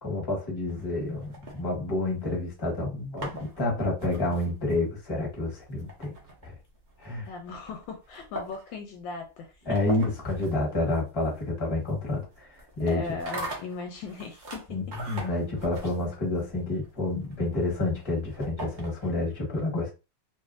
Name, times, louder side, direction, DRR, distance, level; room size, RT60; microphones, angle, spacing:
voice 1, 0.0-6.1 6.4-6.5 7.0-7.3 9.6-12.5 12.8-13.0 14.7-19.9, left 2 dB, 15° left, 0.9 m, -29 dB
sound 1, 0.7-2.3 2.9-19.3, right 1 dB, 80° right, 0.4 m, -43 dB
voice 2, 7.3-9.8 12.9-15.0, left 4 dB, 75° left, 1.3 m, -38 dB
2.9 x 2.7 x 2.5 m
omnidirectional pair, 2.2 m